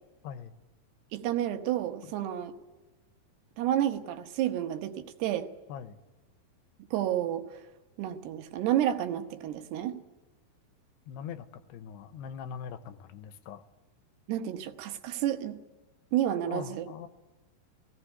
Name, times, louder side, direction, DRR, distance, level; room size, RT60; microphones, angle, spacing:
voice 1, 0.2-0.5 2.0-2.1 5.7-6.0 11.1-13.6 16.5-17.1, left 8 dB, 90° left, 12 dB, 3.0 m, -42 dB
voice 2, 1.1-2.5 3.6-5.5 6.9-7.5 8.0-10.0 14.3-15.6 16.1-16.9, right 11 dB, 85° right, 8 dB, 3.1 m, -30 dB
17.5 x 16.5 x 10.0 m, 1.2 s
omnidirectional pair, 4.6 m